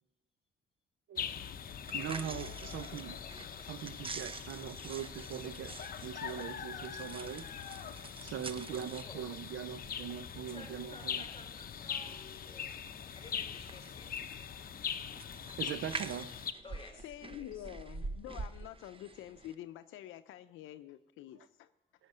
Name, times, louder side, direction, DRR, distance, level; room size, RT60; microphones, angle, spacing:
sound 1, 1.2-16.5, left 8 dB, 45° left, 0.7 m, -42 dB
sound 2, 1.7-19.5, right 4 dB, 25° right, 0.7 m, -48 dB
voice 1, 1.9-3.2 3.7-5.7 6.0-7.5 8.2-11.2 15.6-16.3, right 9 dB, 70° right, 0.7 m, -41 dB
voice 2, 10.5-14.2 16.6-17.7, left 3 dB, 25° left, 4.0 m, -54 dB
voice 3, 17.0-21.7, left 12 dB, 85° left, 0.6 m, -47 dB
14.5 x 5.8 x 9.5 m
cardioid pair, 90°, 20 cm